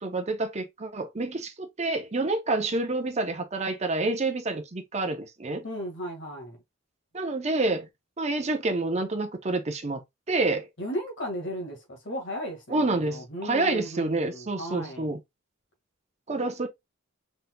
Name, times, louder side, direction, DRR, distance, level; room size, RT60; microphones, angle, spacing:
voice 1, 0.0-5.6 7.1-7.9 8.2-10.0 10.3-10.7 12.7-15.2 16.3-16.7, right 2 dB, 35° right, 0.7 m, -28 dB
voice 2, 5.6-6.6 10.8-15.1, equal, 65° left, 1.7 m, -35 dB
4.1 x 4.0 x 2.2 m
head